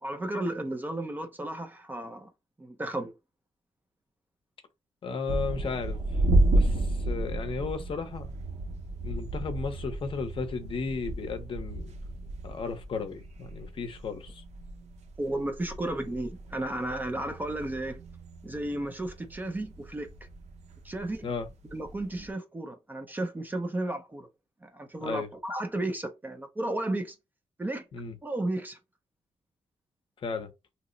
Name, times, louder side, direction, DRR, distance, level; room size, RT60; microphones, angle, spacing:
voice 1, 0.0-2.3 2.6-3.1 15.2-18.0 18.4-20.1 20.8-21.3 21.7-24.3 24.6-27.2 27.6-27.9 28.2-28.8, right 1 dB, 15° right, 0.4 m, -33 dB
voice 2, 5.0-6.0 6.5-8.3 9.0-11.9 12.4-14.4 21.2-21.5 25.0-25.3 27.9-28.2 30.2-30.5, left 4 dB, 50° left, 0.6 m, -34 dB
sound 1, 5.3-22.3, right 2 dB, 80° right, 0.6 m, -32 dB
2.9 x 2.0 x 3.8 m
wide cardioid pair, 155°, 11 cm